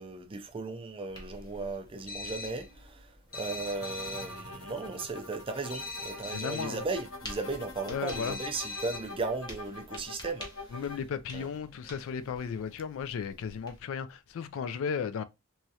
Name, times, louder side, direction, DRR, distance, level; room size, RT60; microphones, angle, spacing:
voice 1, 0.0-10.8 11.3-11.5, right 3 dB, 25° right, 0.4 m, -36 dB
sound 1, 1.1-13.8, left 1 dB, 20° left, 0.8 m, -51 dB
sound 2, 2.1-2.7 3.3-4.4 5.7-6.8 8.1-9.2, left 3 dB, 45° left, 1.0 m, -41 dB
sound 3, 3.3-11.0, left 2 dB, 85° left, 1.0 m, -45 dB
voice 2, 6.3-6.8 7.9-8.4 10.7-15.2, left 6 dB, 65° left, 0.3 m, -35 dB
3.0 x 2.4 x 2.7 m
head